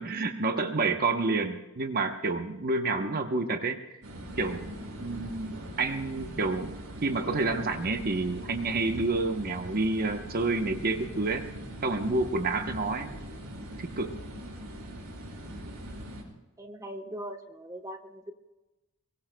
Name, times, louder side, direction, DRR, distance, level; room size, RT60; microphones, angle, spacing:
voice 1, 0.0-3.8 4.4-4.7 5.0-11.5 11.8-13.1 13.8-14.2, right 3 dB, 45° right, 6 dB, 0.9 m, -29 dB
sound 1, 4.0-16.2, equal, 75° right, 5.9 m, -41 dB
voice 2, 16.6-18.3, right 1 dB, 15° right, 6 dB, 1.1 m, -40 dB
23.0 x 22.5 x 2.3 m, 1.1 s
head